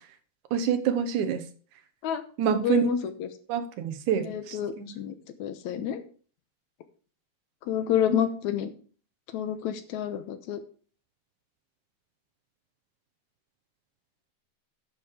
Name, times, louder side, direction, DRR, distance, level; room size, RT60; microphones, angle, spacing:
voice 1, 0.5-1.4 2.4-2.9 3.5-4.9, right 8 dB, 85° right, 10 dB, 2.6 m, -27 dB
voice 2, 2.5-3.3 4.1-6.0 7.7-8.7 9.3-10.6, left 8 dB, 80° left, 10 dB, 2.3 m, -29 dB
10.5 x 6.5 x 4.9 m, 0.41 s
omnidirectional pair, 3.4 m